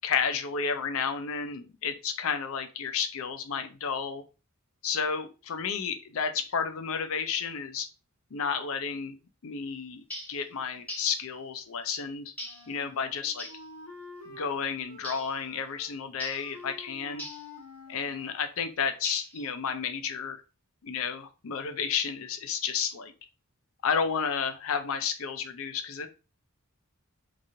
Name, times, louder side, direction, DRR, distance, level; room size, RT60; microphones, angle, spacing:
voice 1, 0.0-4.2 4.8-7.9 8.3-9.2 9.4-12.3 12.7-13.5 14.3-17.3 17.9-20.4 20.8-23.1 23.8-26.1, left 6 dB, 70° left, 8 dB, 0.5 m, -31 dB
sound 1, 10.1-10.4 10.9-11.2 12.4-12.7 13.4-13.6 15.0-15.3 16.2-16.5 17.2-17.5 19.0-19.5, equal, 5° left, 0.8 m, -40 dB
Wind instrument woodwind instrument, 12.4-14.5 14.9-15.9 16.2-18.4, left 2 dB, 85° left, 1.3 m, -48 dB
2.9 x 2.5 x 2.7 m, 0.32 s
head